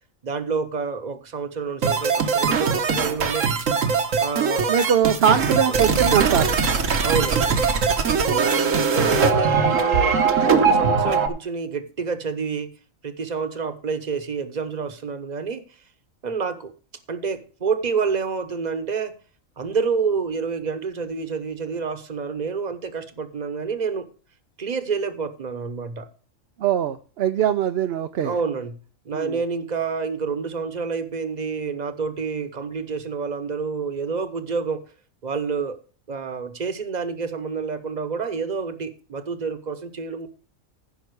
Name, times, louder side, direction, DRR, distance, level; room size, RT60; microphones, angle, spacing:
voice 1, 0.2-3.5 4.2-4.7 5.2-5.4 5.7-5.8 7.0-7.6 8.9-12.7 13.0-15.6 16.2-16.7 17.1-19.1 19.6-24.1 24.6-26.1 28.2-28.8 29.0-34.8 35.2-35.8 36.1-40.3, right 5 dB, 35° right, 1.1 m, -28 dB
sound 1, 1.8-11.3, right 5 dB, 75° right, 1.5 m, -21 dB
voice 2, 4.7-6.6 8.0-8.5 26.6-28.3 29.1-29.4, right 9 dB, 60° right, 0.7 m, -22 dB
15.0 x 5.7 x 4.8 m
omnidirectional pair, 1.3 m